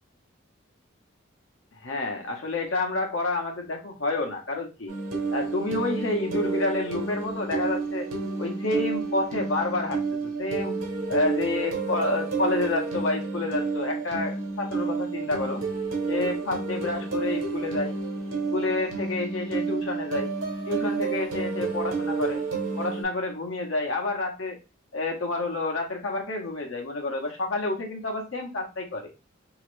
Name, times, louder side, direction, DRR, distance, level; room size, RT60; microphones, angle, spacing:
voice 1, 1.8-4.9 5.3-8.1 8.4-10.8 11.1-15.6 16.1-17.9 18.3-20.3 20.7-22.4 22.8-24.6 24.9-29.1, left 2 dB, 70° left, 2 dB, 1.0 m, -29 dB
sound 1, 4.9-23.0, right 4 dB, 85° right, 1.0 m, -30 dB
3.1 x 2.8 x 3.1 m, 0.28 s
head